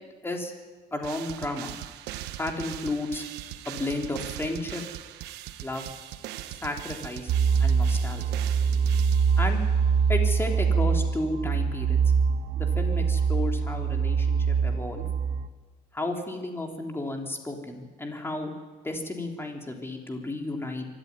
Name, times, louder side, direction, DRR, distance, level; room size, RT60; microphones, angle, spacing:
voice 1, 0.9-1.7 2.4-3.2 3.6-4.8 5.6-5.9 6.6-7.3 7.6-8.4 9.4-9.6 10.1-12.0 12.5-15.0 15.9-18.5 18.8-20.9, left 2 dB, 15° left, 2 dB, 3.3 m, -33 dB
sound 1, 1.0-9.8, right 13 dB, 90° right, 1.1 m, -40 dB
sound 2, 7.3-15.5, right 6 dB, 60° right, 1.2 m, -24 dB
24.5 x 13.5 x 9.7 m, 1.4 s
cardioid pair, 110°, 17 cm